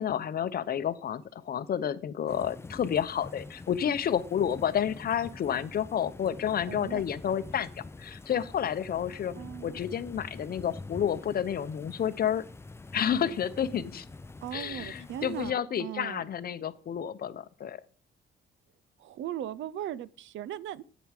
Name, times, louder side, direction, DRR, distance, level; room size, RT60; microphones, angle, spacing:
voice 1, 0.0-12.5 12.9-14.1 14.5-17.8, left 9 dB, 50° left, 0.7 m, -30 dB
sound 1, 2.3-15.5, left 3 dB, 15° left, 0.4 m, -46 dB
voice 2, 6.7-7.0 9.4-9.8 14.4-16.3 19.0-20.8, right 11 dB, 70° right, 0.5 m, -38 dB
8.6 x 6.7 x 4.9 m
cardioid pair, 90°, 20 cm